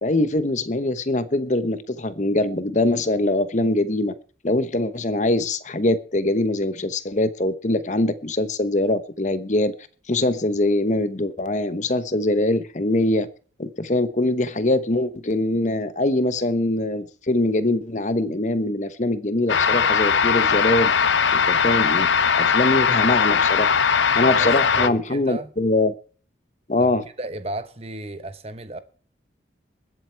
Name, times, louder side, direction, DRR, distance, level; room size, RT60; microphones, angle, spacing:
voice 1, 0.0-4.1 4.4-9.7 10.1-13.3 13.6-20.9 21.3-22.1 22.3-23.7 24.1-25.9 26.7-27.0, left 1 dB, 40° left, 1.0 m, -23 dB
sound 1, 19.5-24.9, left 6 dB, 75° left, 0.8 m, -19 dB
voice 2, 24.3-25.5 26.8-26.9 27.2-28.8, right 1 dB, 30° right, 1.1 m, -34 dB
21.0 x 7.9 x 4.6 m
head